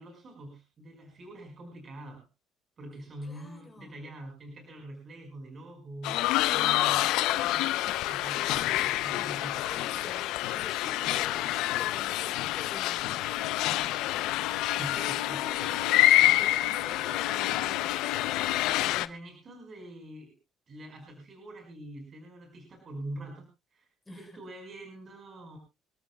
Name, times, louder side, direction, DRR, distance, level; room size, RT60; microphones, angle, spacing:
voice 1, 0.0-2.2 2.8-7.7 8.0-9.8 14.7-15.4 18.9-20.3 20.7-25.6, right 1 dB, 40° right, 5.2 m, -44 dB
voice 2, 3.2-4.0 8.5-9.3 9.7-14.2 14.5-18.6 24.1-24.4, left 3 dB, 10° left, 4.1 m, -48 dB
sound 1, 6.0-19.1, left 15 dB, 80° left, 0.7 m, -27 dB
26.5 x 13.5 x 2.4 m
cardioid pair, 110°, 0 cm